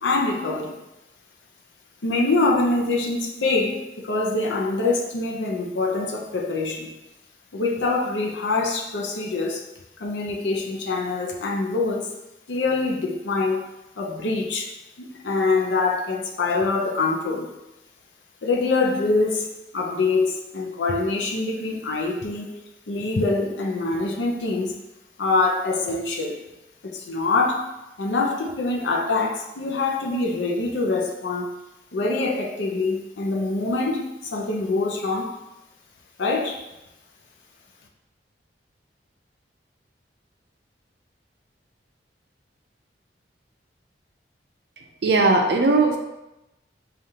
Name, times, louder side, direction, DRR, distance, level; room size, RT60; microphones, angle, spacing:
voice 1, 0.0-0.7 2.0-6.9 7.5-9.6 10.0-12.1 12.5-13.6 14.0-14.7 15.0-17.5 18.4-22.5 22.9-24.7 25.2-26.4 26.8-27.6 28.0-31.5 31.9-35.3 36.2-36.6, left 3 dB, 80° left, 0 dB, 0.6 m, -24 dB
voice 2, 45.0-46.0, right 3 dB, 65° right, 4 dB, 0.5 m, -18 dB
5.0 x 2.4 x 2.8 m, 0.94 s
head